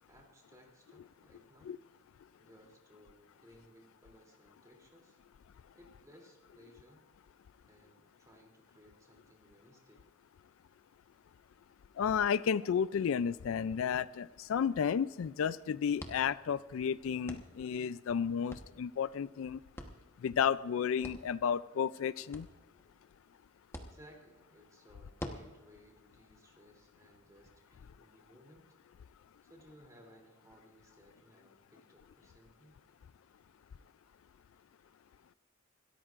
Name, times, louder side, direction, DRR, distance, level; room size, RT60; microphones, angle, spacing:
voice 1, 0.1-1.7 2.4-5.2 5.7-7.0 7.7-10.1 23.9-28.8 29.4-32.8, equal, 15° right, 1 dB, 3.0 m, -61 dB
voice 2, 12.0-19.6 20.2-22.5, left 7 dB, 70° left, 17 dB, 0.3 m, -32 dB
sound 1, 14.5-27.5, left 1 dB, 10° left, 1.1 m, -52 dB
27.0 x 13.5 x 2.5 m, 1.2 s
head